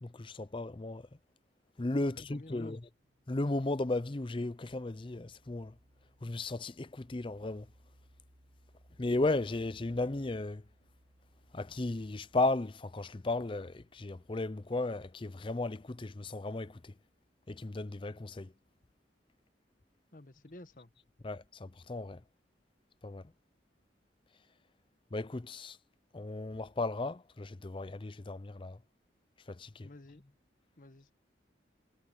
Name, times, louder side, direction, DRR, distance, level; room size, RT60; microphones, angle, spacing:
voice 1, 0.0-1.1 1.8-2.8 3.3-5.7 6.2-7.7 9.0-10.6 11.5-16.9 17.5-18.5 21.2-22.2 23.0-23.2 25.1-25.8 26.1-28.8 29.5-29.9, left 2 dB, 30° left, 0.5 m, -35 dB
voice 2, 2.0-2.7 20.1-20.9 29.8-30.2 30.8-31.1, left 2 dB, 50° left, 1.3 m, -52 dB
sound 1, 3.0-18.4, equal, 85° right, 5.2 m, -66 dB
head